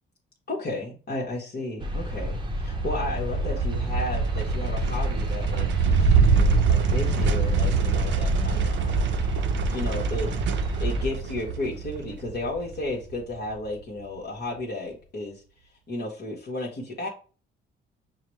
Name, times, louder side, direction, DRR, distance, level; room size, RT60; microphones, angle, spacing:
voice 1, 0.5-9.1 9.7-10.3 10.8-15.4 15.9-17.1, left 2 dB, 50° left, -3 dB, 1.1 m, -33 dB
sound 1, 1.8-11.1, right 1 dB, 25° right, 0.7 m, -30 dB
sound 2, 2.7-13.3, right 5 dB, 70° right, 0.6 m, -25 dB
5.6 x 2.1 x 3.0 m, 0.38 s
cardioid pair, 90°, 20 cm